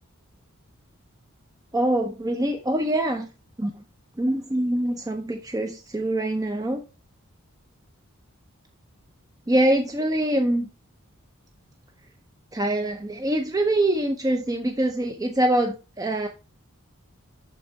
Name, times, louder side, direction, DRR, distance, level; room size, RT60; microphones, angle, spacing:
voice 1, 1.7-3.3 3.6-3.8 4.2-6.8 9.5-10.7 12.5-16.3, right 1 dB, 15° right, 0.6 m, -24 dB
11.0 x 3.8 x 4.4 m
head